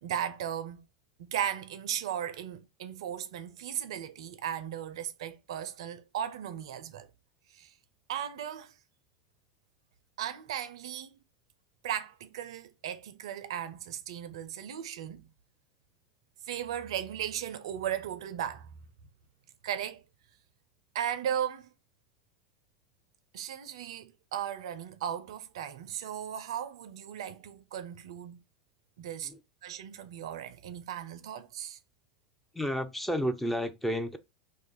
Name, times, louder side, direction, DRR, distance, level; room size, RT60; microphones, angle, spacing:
voice 1, 0.0-0.8 1.2-7.1 7.5-7.7 8.1-8.7 10.2-11.1 11.8-15.3 16.5-18.7 19.6-20.0 20.9-21.7 23.3-28.4 29.0-29.3 29.6-31.8, right 9 dB, 65° right, 0.4 m, -36 dB
voice 2, 32.5-34.2, equal, 5° left, 0.5 m, -31 dB
2.6 x 2.4 x 4.0 m
figure-of-eight pair, 85°, 3 cm